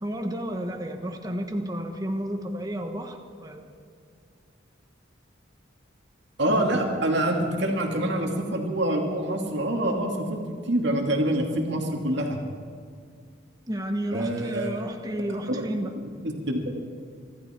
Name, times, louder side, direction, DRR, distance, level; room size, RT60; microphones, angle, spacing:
voice 1, 0.0-3.7 13.7-15.9, equal, 20° right, 4 dB, 1.2 m, -31 dB
voice 2, 6.4-12.4 14.1-14.8 15.2-15.6 16.2-16.7, right 1 dB, 60° right, 1 dB, 2.5 m, -26 dB
25.0 x 13.0 x 4.5 m, 2.2 s
head